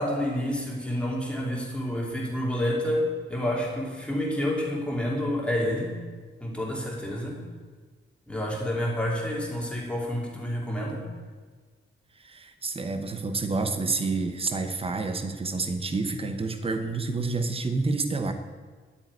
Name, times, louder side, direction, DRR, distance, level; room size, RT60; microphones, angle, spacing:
voice 1, 0.0-6.0 6.4-7.4 8.3-11.1, left 1 dB, 5° left, -3 dB, 2.8 m, -29 dB
voice 2, 12.2-18.3, right 3 dB, 25° right, 8 dB, 1.0 m, -29 dB
10.5 x 8.7 x 9.5 m, 1.5 s
wide cardioid pair, 170°, 21 cm